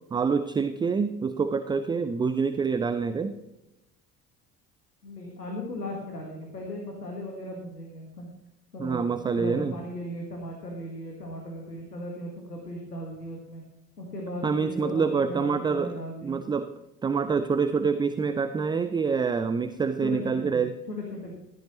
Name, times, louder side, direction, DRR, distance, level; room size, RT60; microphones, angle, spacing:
voice 1, 0.1-3.3 8.8-9.7 14.4-15.9 16.2-16.7 17.0-20.8, right 5 dB, 10° right, 11 dB, 0.4 m, -26 dB
voice 2, 5.0-8.3 8.7-9.1 9.3-13.6 14.0-16.4 20.0-20.6 20.9-21.3, left 1 dB, 85° left, 0 dB, 1.6 m, -37 dB
14.5 x 10.5 x 3.0 m, 0.92 s
figure-of-eight pair, 55°, 46 cm